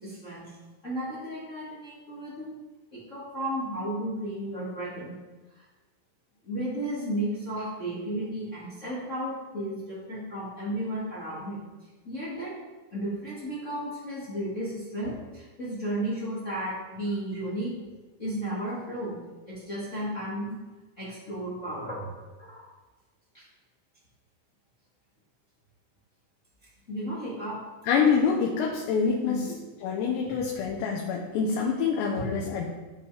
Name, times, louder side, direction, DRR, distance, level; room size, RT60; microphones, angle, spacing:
voice 1, 0.0-0.6 0.8-2.5 2.9-5.2 5.5-5.6 6.4-11.6 12.0-12.6 12.9-17.7 18.2-19.2 19.5-20.6 21.0-22.1 22.4-22.7 23.3-23.5 26.9-27.6 29.2-29.6 32.1-32.2, right 1 dB, 60° left, -8 dB, 0.7 m, -33 dB
voice 2, 27.8-29.5 29.8-32.7, left 6 dB, 75° left, -1 dB, 2.9 m, -26 dB
14.0 x 5.8 x 3.4 m, 1.2 s
omnidirectional pair, 5.3 m